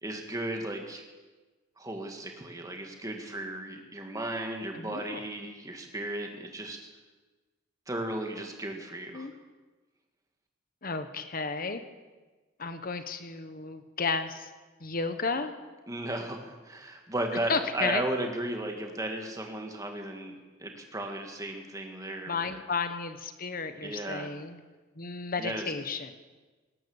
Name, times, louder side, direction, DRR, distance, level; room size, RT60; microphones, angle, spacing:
voice 1, 0.0-1.0 1.8-6.9 7.9-9.3 15.9-22.5 23.8-24.3 25.4-25.7, right 1 dB, 15° right, 3 dB, 1.8 m, -35 dB
voice 2, 4.7-5.2 9.1-9.3 10.8-11.8 12.6-14.5 14.8-15.5 17.5-18.0 22.3-24.6 25.0-26.1, left 4 dB, 45° left, 9 dB, 1.2 m, -33 dB
18.5 x 10.5 x 7.2 m, 1.3 s
head